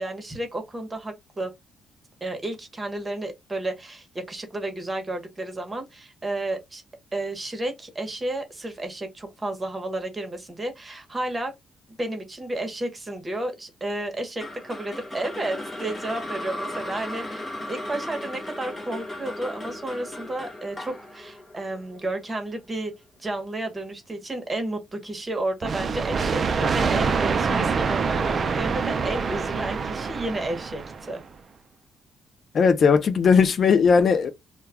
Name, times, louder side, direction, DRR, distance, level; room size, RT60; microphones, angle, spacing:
voice 1, 0.0-1.5 2.2-6.8 7.1-11.5 12.0-22.9 23.2-30.8 31.1-31.2, right 2 dB, 20° right, 0.9 m, -32 dB
sound 1, 14.4-22.6, left 1 dB, 30° left, 0.8 m, -36 dB
sound 2, 25.6-31.2, right 5 dB, 45° right, 0.3 m, -25 dB
voice 2, 32.5-34.3, left 5 dB, 50° left, 0.4 m, -18 dB
2.3 x 2.2 x 3.3 m
cardioid pair, 90°, 0 cm